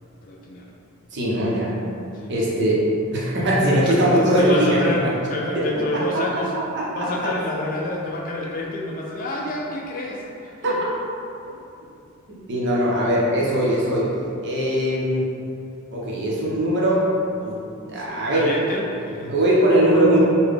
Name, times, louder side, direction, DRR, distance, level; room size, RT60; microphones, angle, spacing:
voice 1, 0.2-0.7 2.1-2.6 3.4-3.9 4.4-6.5 7.0-10.8 18.0-19.5, left 1 dB, 40° left, -1 dB, 0.3 m, -29 dB
voice 2, 1.1-1.7 2.3-2.8 3.1-5.1 5.5-5.8 6.1-6.2 6.5-7.3 10.6-10.7 12.3-14.1 14.4-15.3 15.9-17.1 17.4-18.5 19.3-20.2, right 1 dB, 55° right, -6 dB, 0.7 m, -21 dB
3.8 x 2.2 x 3.3 m, 2.7 s
head